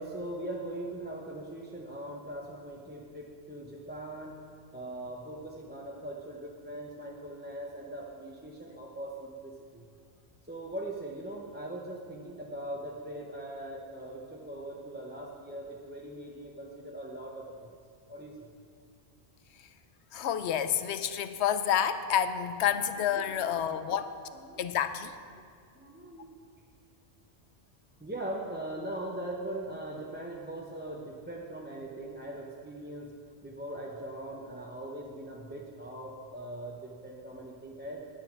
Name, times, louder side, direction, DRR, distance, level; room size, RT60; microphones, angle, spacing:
voice 1, 0.0-4.4 4.7-9.8 10.5-17.7 18.1-18.5 22.7-24.6 25.3-25.4 25.7-26.5 28.0-33.1 33.4-38.0, right 1 dB, 10° right, -2 dB, 0.7 m, -41 dB
voice 2, 20.1-24.1 24.6-25.1, left 9 dB, 90° left, 11 dB, 0.9 m, -29 dB
10.0 x 9.1 x 5.9 m, 2.2 s
omnidirectional pair, 1.1 m